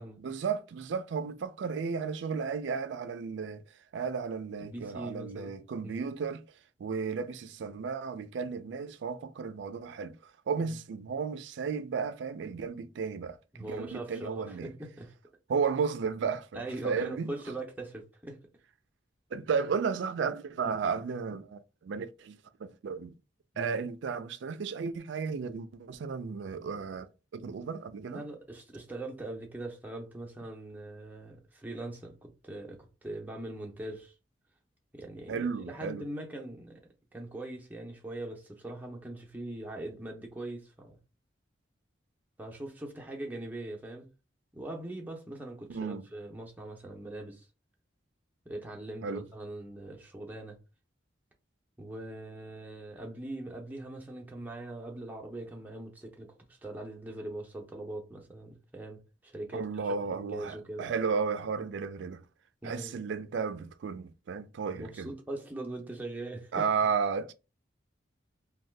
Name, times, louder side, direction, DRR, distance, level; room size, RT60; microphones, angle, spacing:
voice 1, 0.2-3.6 3.9-6.4 6.8-14.7 15.5-17.3 19.3-23.2 23.6-28.2 35.3-36.0 45.7-46.0 49.0-49.2 59.5-62.2 62.6-65.1 66.5-67.3, right 5 dB, 70° right, 0.3 m, -34 dB
voice 2, 4.6-5.5 5.8-6.1 10.7-10.8 13.5-15.1 16.5-18.4 20.6-20.8 23.5-23.8 27.4-27.6 28.0-34.1 34.9-36.8 37.1-41.0 42.4-44.1 44.5-47.5 48.5-50.6 51.8-60.9 62.6-63.0 64.7-66.6, right 1 dB, 10° right, 0.6 m, -41 dB
2.7 x 2.2 x 3.2 m
head